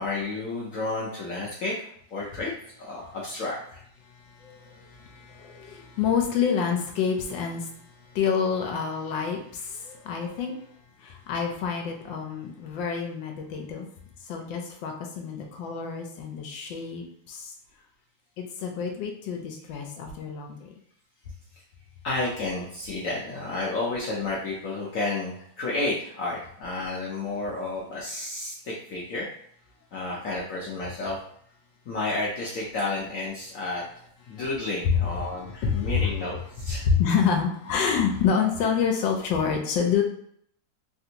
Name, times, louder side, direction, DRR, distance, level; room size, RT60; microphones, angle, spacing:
voice 1, 0.0-2.5 2.8-3.8 22.0-29.3 29.9-31.2 31.9-33.8 34.3-36.9, left 2 dB, 65° left, -4 dB, 0.8 m, -31 dB
voice 2, 4.1-10.6 11.0-13.9 14.2-17.5 18.4-20.7 34.3-34.4 35.6-36.1 36.8-40.0, left 6 dB, 85° left, 2 dB, 1.3 m, -28 dB
3.4 x 2.5 x 2.8 m, 0.65 s
omnidirectional pair, 2.0 m